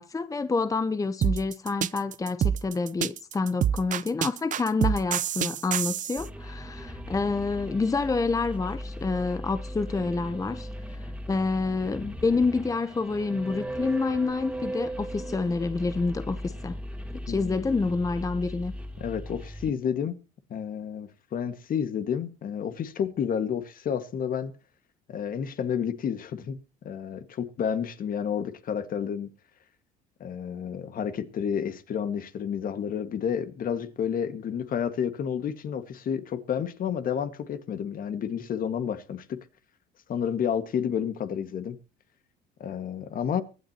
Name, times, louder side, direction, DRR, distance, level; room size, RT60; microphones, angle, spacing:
voice 1, 0.0-16.8 17.3-18.7, left 4 dB, 20° left, 0.8 m, -28 dB
sound 1, 1.2-6.3, right 10 dB, 45° right, 0.6 m, -27 dB
sound 2, 6.2-19.7, equal, 5° right, 2.7 m, -38 dB
voice 2, 17.3-17.6 19.0-20.2 20.5-24.5 25.1-26.6 26.8-29.3 30.2-39.4 40.1-41.8 42.6-43.4, left 8 dB, 50° left, 1.8 m, -30 dB
24.0 x 9.1 x 2.9 m
supercardioid pair, 85°, 18 cm